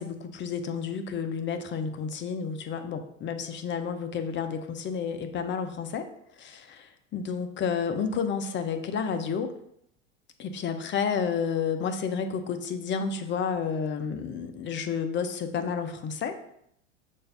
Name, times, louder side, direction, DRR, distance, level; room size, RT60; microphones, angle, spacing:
voice 1, 0.0-6.1 6.4-9.5 10.4-16.4, left 6 dB, 30° left, 8 dB, 0.7 m, -31 dB
6.6 x 2.7 x 5.4 m, 0.72 s
hypercardioid pair, 100°, 37 cm